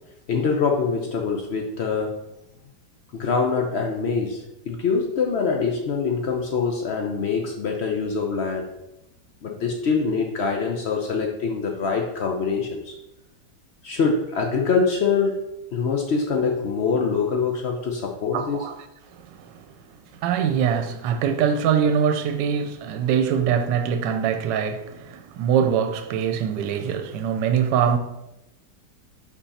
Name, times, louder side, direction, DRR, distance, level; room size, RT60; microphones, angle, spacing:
voice 1, 0.3-2.2 3.1-8.7 9.4-13.0 13.8-15.4 15.7-18.6, left 5 dB, 85° left, 0.5 m, -24 dB
voice 2, 18.3-18.8 19.1-19.6 20.1-28.0, right 8 dB, 75° right, 1.2 m, -23 dB
5.6 x 4.6 x 4.1 m
omnidirectional pair, 2.0 m